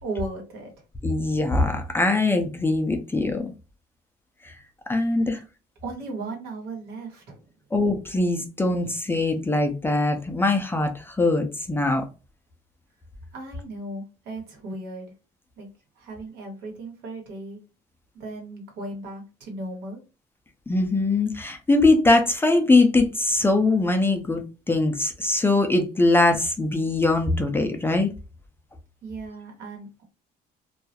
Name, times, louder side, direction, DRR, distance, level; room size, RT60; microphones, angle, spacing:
voice 1, 0.0-0.7 5.8-7.5 13.3-15.1 15.6-15.7 16.0-17.6 18.1-20.0 29.0-30.0, right 2 dB, 80° right, 2 dB, 1.1 m, -36 dB
voice 2, 1.0-3.5 4.4-4.5 4.9-5.4 7.7-12.1 20.7-28.1, left 2 dB, 15° left, 5 dB, 0.4 m, -22 dB
2.3 x 2.0 x 2.8 m, 0.31 s
cardioid pair, 110°, 17 cm